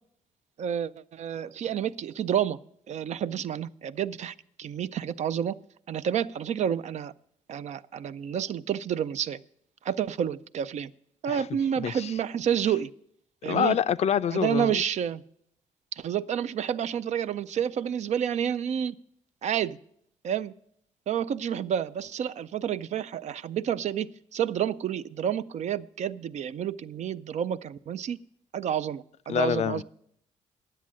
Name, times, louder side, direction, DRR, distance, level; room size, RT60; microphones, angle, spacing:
voice 1, 0.6-2.6 2.9-5.5 5.9-7.1 7.5-9.4 9.8-10.9 11.2-12.9 13.4-13.8 14.3-15.2 15.9-19.0 19.4-19.8 20.2-20.5 21.1-28.2 28.5-29.8, right 9 dB, 55° right, 15 dB, 0.4 m, -29 dB
voice 2, 11.8-12.1 13.5-14.8 29.3-29.8, left 9 dB, 50° left, 15 dB, 0.4 m, -26 dB
10.0 x 7.5 x 7.4 m, 0.70 s
cardioid pair, 85°, 14 cm